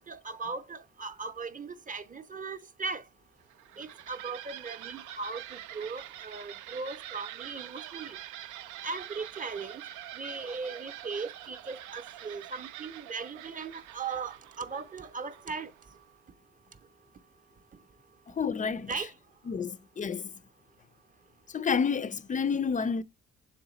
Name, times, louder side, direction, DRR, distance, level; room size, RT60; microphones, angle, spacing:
voice 1, 0.0-3.0 3.8-8.2 8.8-9.8 10.2-15.7 18.9-19.1, right 4 dB, 25° right, 0.6 m, -38 dB
sound 1, 3.4-16.0, right 12 dB, 85° right, 0.5 m, -45 dB
voice 2, 18.3-18.9 19.5-20.3 21.5-23.0, left 6 dB, 25° left, 0.4 m, -29 dB
6.9 x 3.9 x 3.9 m
cardioid pair, 90°, 30 cm